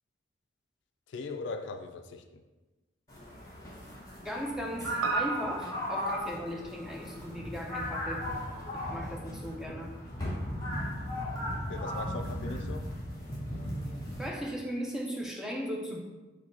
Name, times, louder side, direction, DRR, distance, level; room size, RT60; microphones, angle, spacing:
voice 1, 1.1-2.4 11.7-12.9, left 3 dB, 65° left, 6 dB, 0.3 m, -39 dB
Selling overwinter vegatables, 3.1-14.3, equal, 20° left, 1.2 m, -36 dB
voice 2, 4.2-8.2 8.7-9.9 14.2-16.0, equal, ahead, -1 dB, 0.5 m, -37 dB
Piano, 5.0-9.5 9.8-9.9, right 5 dB, 90° right, 0.3 m, -40 dB
4.8 x 2.2 x 4.3 m, 1.2 s
head